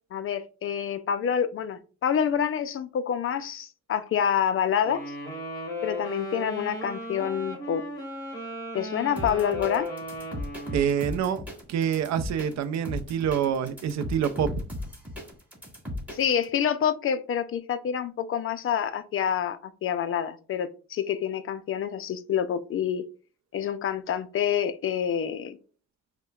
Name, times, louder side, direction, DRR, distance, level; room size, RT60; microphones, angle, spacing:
voice 1, 0.1-5.0 5.8-7.8 8.7-9.9 16.1-23.0 23.5-25.6, left 8 dB, 45° left, 0.4 m, -27 dB
Wind instrument woodwind instrument, 4.8-11.3, equal, 10° left, 1.9 m, -36 dB
sound 1, 9.2-16.5, left 1 dB, 5° right, 1.7 m, -36 dB
voice 2, 10.7-11.4 11.7-14.5, right 8 dB, 65° right, 0.5 m, -26 dB
5.4 x 2.1 x 2.3 m
cardioid pair, 90°, 30 cm